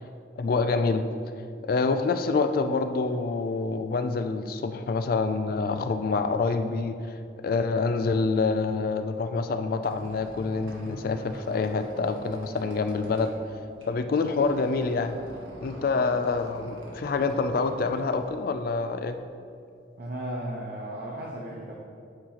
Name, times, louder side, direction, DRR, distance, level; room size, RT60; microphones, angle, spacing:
voice 1, 0.4-1.0 1.6-13.3 13.9-15.2 15.6-19.2, left 4 dB, 50° left, 8 dB, 0.3 m, -26 dB
Squeak, 9.5-19.1, equal, 90° right, 1.4 m, -45 dB
voice 2, 20.0-21.7, right 1 dB, 50° right, -3 dB, 0.7 m, -35 dB
8.6 x 3.0 x 5.7 m, 2.4 s
head